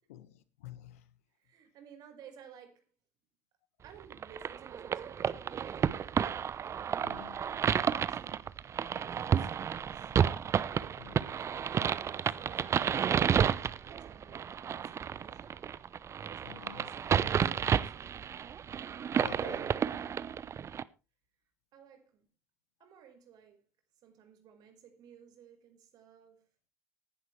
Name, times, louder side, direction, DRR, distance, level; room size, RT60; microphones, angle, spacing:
voice 1, 0.1-1.1 7.0-7.4 11.0-11.2 16.4-16.8 19.2-19.8, left 12 dB, 75° left, 1.4 m, -49 dB
voice 2, 1.4-2.9 3.8-6.3 7.3-8.5 9.0-10.1 10.5-15.6 16.1-18.3 21.7-22.3 22.8-23.6 24.0-26.5, right 8 dB, 55° right, 4.8 m, -56 dB
sound 1, 4.1-20.8, right 8 dB, 40° right, 0.8 m, -31 dB
18.5 x 11.0 x 3.3 m
hypercardioid pair, 65°, 8 cm